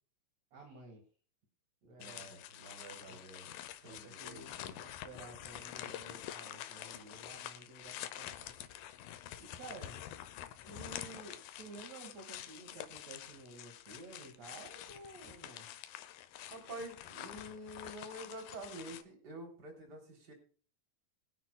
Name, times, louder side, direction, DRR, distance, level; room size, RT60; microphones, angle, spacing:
voice 1, 0.5-1.0 1.8-2.3 3.1-3.2 3.8-8.5 9.4-10.0 10.6-15.7, right 3 dB, 50° right, 0 dB, 3.0 m, -52 dB
voice 2, 1.9-3.5 3.8-4.8 16.5-20.3, right 1 dB, 25° right, 1 dB, 3.8 m, -48 dB
sound 1, 2.0-19.0, left 12 dB, 80° left, 2.5 m, -47 dB
23.0 x 9.4 x 2.3 m, 0.41 s
omnidirectional pair, 4.3 m